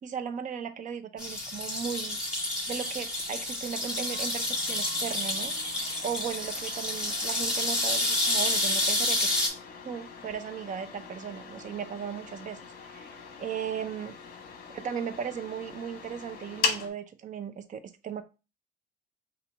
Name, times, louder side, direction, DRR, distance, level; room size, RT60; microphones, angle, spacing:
voice 1, 0.0-2.2 2.7-5.5 6.0-9.3 9.8-12.6 12.9-13.1 13.4-14.2 14.7-18.2, right 7 dB, 40° right, 10 dB, 0.6 m, -36 dB
sound 1, 1.2-16.9, left 5 dB, 50° left, 1.1 m, -41 dB
sound 2, 1.2-9.5, left 1 dB, 5° right, 2.1 m, -29 dB
5.8 x 2.5 x 3.4 m, 0.29 s
cardioid pair, 130°, 19 cm